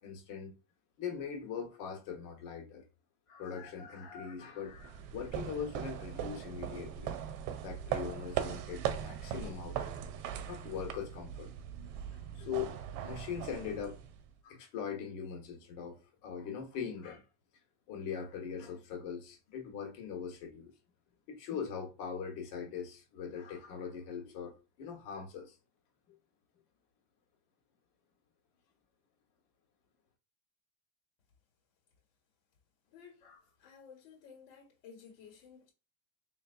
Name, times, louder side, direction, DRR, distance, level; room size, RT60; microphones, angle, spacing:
voice 1, 0.0-0.5 1.0-2.8 3.3-7.1 7.6-10.0 10.5-11.5 12.3-14.0 14.4-16.0 16.2-17.2 17.9-20.7 21.3-25.6 26.1-26.2 33.2-33.3, left 7 dB, 85° left, 1.5 m, -41 dB
sound 1, 4.7-14.3, right 9 dB, 80° right, 0.8 m, -39 dB
voice 2, 32.9-35.7, left 6 dB, 65° left, 1.8 m, -55 dB
4.3 x 3.1 x 2.5 m
cardioid pair, 175°, 48 cm